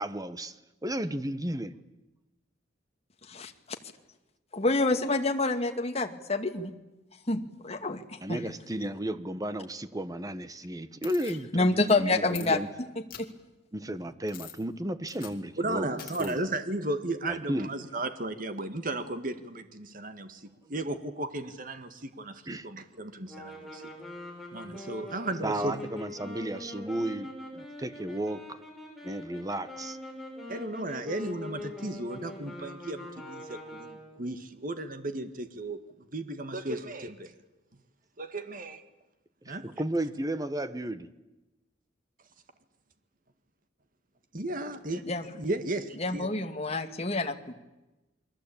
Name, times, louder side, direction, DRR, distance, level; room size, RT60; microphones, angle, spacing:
voice 1, 0.0-1.8 8.2-11.7 12.0-12.7 13.7-16.4 17.3-17.7 22.5-22.7 25.4-28.6 29.0-30.0 39.4-41.1, right 1 dB, 20° right, 12 dB, 1.3 m, -34 dB
voice 2, 4.5-6.7 7.3-8.0 8.3-8.4 11.5-12.6 13.2-13.3 45.1-45.3 46.0-47.5, left 2 dB, 35° left, 5 dB, 2.2 m, -27 dB
sound 1, 11.0-11.3 11.9-12.0 12.3-12.5 13.1-13.2 14.3-14.6 15.1-15.4 16.0-16.3, left 11 dB, 50° left, 3.1 m, -44 dB
voice 3, 15.6-23.8 24.5-25.8 30.5-35.8 36.1-37.3 38.2-38.8 39.5-39.7 44.3-45.0 45.3-46.3, right 2 dB, 50° right, 9 dB, 1.7 m, -35 dB
sound 2, 23.3-34.3, left 1 dB, ahead, 6.5 m, -43 dB
29.0 x 22.5 x 8.7 m, 1.0 s
head